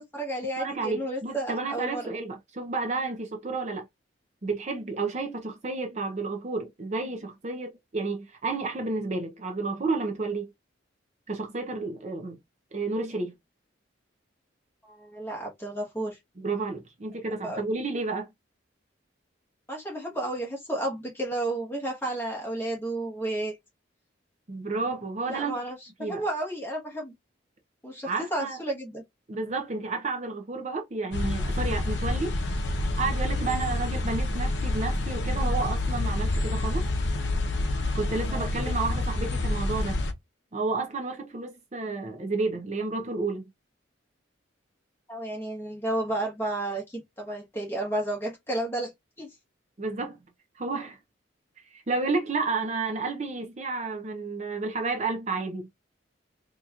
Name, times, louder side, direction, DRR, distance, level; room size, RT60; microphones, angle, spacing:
voice 1, 0.0-2.1 14.8-16.2 17.4-17.7 19.7-23.5 25.2-27.1 27.8-29.0 33.5-33.7 38.3-38.5 45.1-48.9 49.2-49.3, right 1 dB, 10° left, 1.2 m, -32 dB
voice 2, 0.6-3.9 4.4-10.5 11.3-12.4 12.7-13.3 16.4-18.3 24.5-25.6 26.0-26.2 28.1-28.6 29.3-32.4 33.0-36.8 37.9-40.0 40.5-43.4 49.8-50.2 50.6-51.0 51.7-55.7, right 3 dB, 35° right, 0.6 m, -31 dB
sound 1, 31.1-40.1, left 2 dB, 65° left, 0.7 m, -28 dB
4.1 x 2.8 x 2.4 m
head